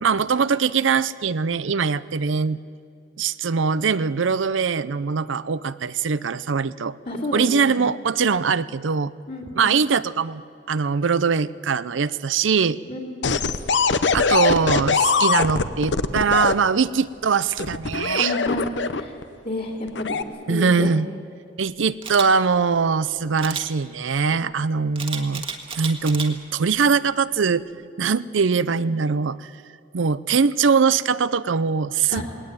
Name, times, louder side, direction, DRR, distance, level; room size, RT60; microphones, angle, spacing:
voice 1, 0.0-2.6 3.2-7.0 7.3-9.1 9.6-10.4 10.7-12.8 14.1-18.3 20.5-21.1 21.6-25.4 25.8-27.6 28.0-29.5 29.9-32.2, right 5 dB, 90° right, 16 dB, 0.6 m, -22 dB
voice 2, 7.1-7.7 9.3-9.8 12.9-13.3 18.2-18.6 19.0-19.1 19.4-20.2 20.5-20.9 32.1-32.2, left 1 dB, 50° left, -2 dB, 2.8 m, -30 dB
sound 1, 13.2-16.5 17.6-19.2 19.9-20.2, left 5 dB, 65° left, 0.8 m, -21 dB
Camera, 22.0-22.3 23.4-23.7 25.0-26.3 26.8-27.0, right 6 dB, 30° right, 1.6 m, -32 dB
20.0 x 18.5 x 9.2 m, 2.3 s
head